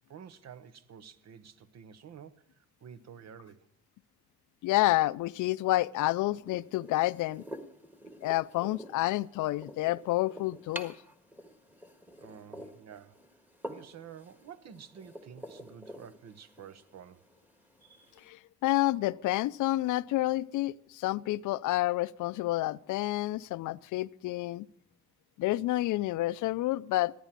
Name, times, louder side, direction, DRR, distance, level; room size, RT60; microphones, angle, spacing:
voice 1, 0.1-3.7 12.2-13.2 13.7-17.2, right 8 dB, 60° right, 1.0 m, -50 dB
voice 2, 4.6-7.4 8.2-10.9 18.3-24.7 25.4-27.1, left 17 dB, 80° left, 0.5 m, -29 dB
sound 1, 6.4-18.3, equal, 5° right, 1.5 m, -48 dB
15.0 x 10.0 x 7.4 m
cardioid pair, 90°, 30 cm